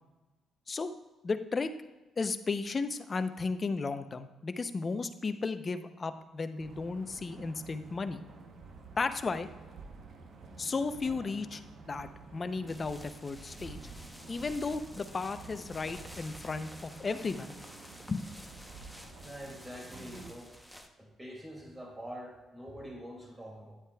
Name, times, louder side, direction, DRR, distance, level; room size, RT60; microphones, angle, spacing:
voice 1, 1.2-1.7 2.2-8.2 9.0-9.5 10.6-13.8 14.3-17.5 18.1-18.2, left 4 dB, 35° left, 10 dB, 0.5 m, -34 dB
sound 1, 6.6-20.3, right 4 dB, 65° right, 0.9 m, -50 dB
sound 2, 12.7-20.9, equal, ahead, 0.8 m, -51 dB
voice 2, 19.2-20.6 21.0-23.8, equal, 15° right, -1 dB, 2.3 m, -45 dB
9.9 x 8.0 x 2.3 m, 1.2 s
cardioid pair, 90°, 0 cm